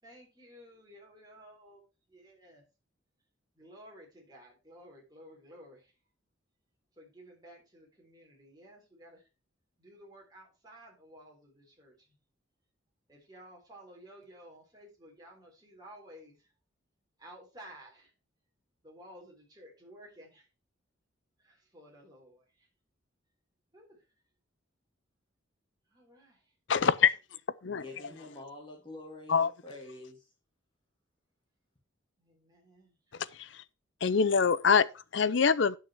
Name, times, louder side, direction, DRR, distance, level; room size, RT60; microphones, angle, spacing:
voice 1, 0.0-1.8 2.1-2.6 3.6-5.9 7.0-9.2 9.8-11.9 13.1-16.5 17.2-18.1 18.8-20.5 21.4-22.7 23.7-24.0 25.9-26.4 27.8-28.2 32.2-33.0, equal, 20° right, 3.9 m, -54 dB
voice 2, 26.7-27.1 27.6-27.8 29.3-29.5 34.0-34.9 35.1-35.8, left 6 dB, 65° left, 0.6 m, -24 dB
voice 3, 27.6-30.3, left 2 dB, 25° left, 2.4 m, -47 dB
10.0 x 6.5 x 4.5 m
head